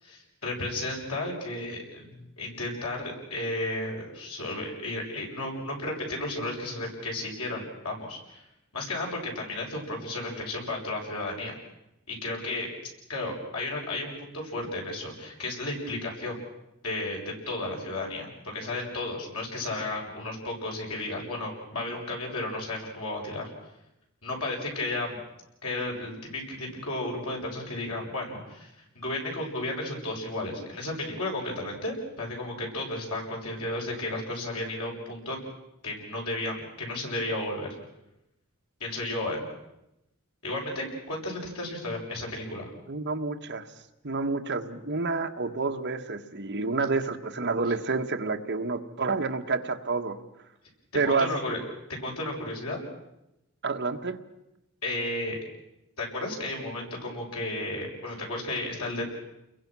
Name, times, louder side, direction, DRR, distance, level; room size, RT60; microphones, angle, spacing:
voice 1, 0.0-8.4 8.7-11.5 12.1-12.7 13.1-16.4 16.8-23.5 24.2-25.2 25.6-35.4 35.8-37.7 38.8-39.4 40.4-42.7 51.0-51.6 51.9-52.8 54.8-55.4 56.0-59.1, left 2 dB, 80° left, -1 dB, 7.3 m, -33 dB
voice 2, 42.9-43.7 44.0-50.2 50.9-51.3 53.6-54.2, right 4 dB, 50° right, 4 dB, 1.5 m, -29 dB
29.5 x 22.5 x 6.3 m, 0.88 s
head